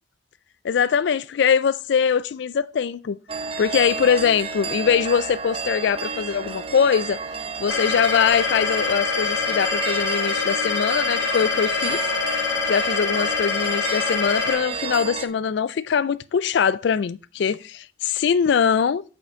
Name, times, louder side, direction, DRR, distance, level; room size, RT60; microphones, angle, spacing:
voice 1, 0.6-3.2 3.6-7.2 7.6-12.0 12.7-19.0, left 7 dB, 65° left, 0.3 m, -22 dB
sound 1, 3.3-15.3, right 5 dB, 30° right, 0.6 m, -31 dB
sound 2, 7.7-14.5, left 5 dB, 80° left, 2.0 m, -25 dB
7.6 x 5.7 x 3.7 m
head